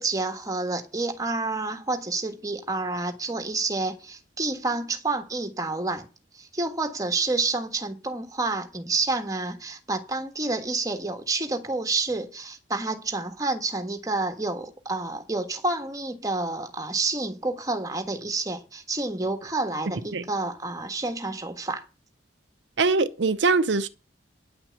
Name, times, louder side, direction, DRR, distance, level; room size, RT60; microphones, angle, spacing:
voice 1, 0.0-6.1 6.3-21.8, right 3 dB, 20° right, 1.5 m, -29 dB
voice 2, 22.8-23.9, right 4 dB, 70° right, 0.7 m, -22 dB
10.0 x 5.9 x 8.1 m
head